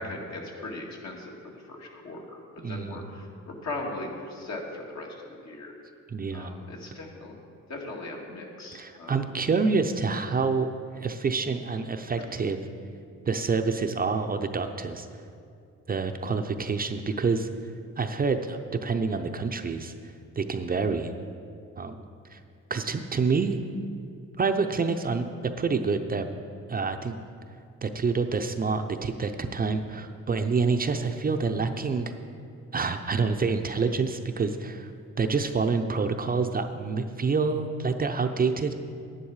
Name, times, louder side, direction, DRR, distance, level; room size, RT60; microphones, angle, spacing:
voice 1, 0.0-5.7 6.3-7.4 7.7-9.3, left 2 dB, 65° left, -1 dB, 2.1 m, -39 dB
voice 2, 2.6-3.1 6.1-6.5 8.7-10.7 11.0-12.6 13.3-15.1 15.9-17.5 18.0-19.9 20.4-21.1 21.8-22.4 22.7-23.6 24.4-25.3 25.6-26.2 26.7-27.1 27.8-32.0 32.7-34.9 35.2-38.7, right 4 dB, 30° right, 6 dB, 0.6 m, -27 dB
10.5 x 10.0 x 4.8 m, 2.4 s
cardioid pair, 90°, 30 cm